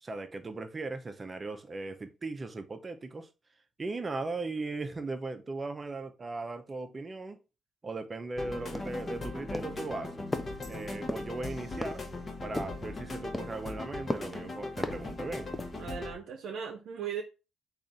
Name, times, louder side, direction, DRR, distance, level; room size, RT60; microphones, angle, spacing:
voice 1, 0.0-3.3 3.8-7.4 7.8-10.3 10.7-12.0 12.4-15.5, right 3 dB, 30° right, 0.6 m, -38 dB
sound 1, 8.4-16.1, left 2 dB, 35° left, 0.8 m, -39 dB
sound 2, 8.7-9.2 9.5-9.8 10.3-10.6 11.1-11.3 11.8-12.1 12.6-12.9 13.3-13.6 14.1-14.4 14.8-15.1 15.5-15.9, left 1 dB, 10° left, 0.4 m, -36 dB
voice 2, 15.8-17.2, right 7 dB, 75° right, 0.6 m, -37 dB
3.4 x 2.4 x 3.9 m
cardioid pair, 90°, 0 cm